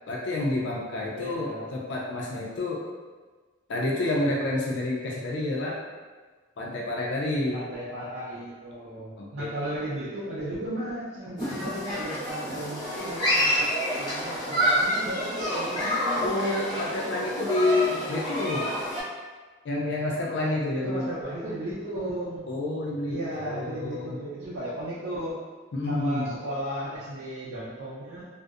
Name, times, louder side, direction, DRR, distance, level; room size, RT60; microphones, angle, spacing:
voice 1, 0.1-2.8 3.7-5.8 6.6-7.6 9.2-9.5 16.2-18.7 19.6-21.1 22.5-24.2 25.7-26.3, left 2 dB, 75° left, -2 dB, 0.4 m, -29 dB
voice 2, 1.1-1.7 7.5-16.4 20.7-22.5 23.1-25.4 25.9-28.2, right 1 dB, 85° right, -9 dB, 0.5 m, -35 dB
Human group actions, 11.4-19.0, equal, 20° left, 0.9 m, -28 dB
2.6 x 2.0 x 2.3 m, 1.4 s
head